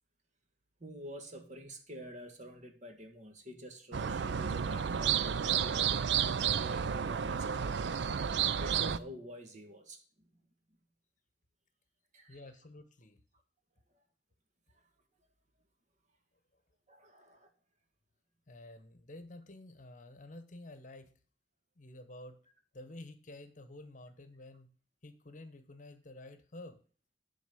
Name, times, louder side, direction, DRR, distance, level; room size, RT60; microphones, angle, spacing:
voice 1, 0.8-8.0 8.6-10.0 12.1-12.4 16.9-17.5, equal, 45° right, 5 dB, 1.5 m, -48 dB
sound 1, 3.9-9.0, right 7 dB, 85° right, 0.5 m, -31 dB
voice 2, 12.3-13.2 18.5-21.1 21.8-22.4 22.7-24.7 25.0-26.8, left 1 dB, 45° left, 11 dB, 0.9 m, -50 dB
10.0 x 4.0 x 6.8 m, 0.41 s
head